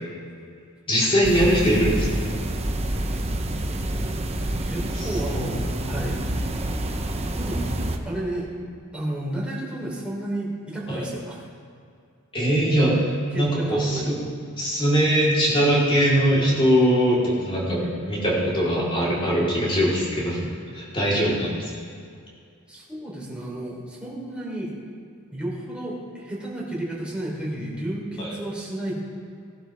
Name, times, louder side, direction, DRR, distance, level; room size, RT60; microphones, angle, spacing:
voice 1, 0.9-2.1 10.9-11.0 12.3-12.9 13.3-14.1 14.6-20.5 20.7-21.7 28.2-28.3, equal, 25° left, -6 dB, 3.9 m, -21 dB
sound 1, 1.2-8.0, right 1 dB, 30° right, 0.9 m, -27 dB
voice 2, 4.4-6.3 7.3-8.5 8.9-11.4 13.3-14.2 22.7-24.7 25.3-29.0, right 1 dB, 5° right, -5 dB, 3.5 m, -32 dB
19.0 x 11.0 x 3.5 m, 2.3 s
head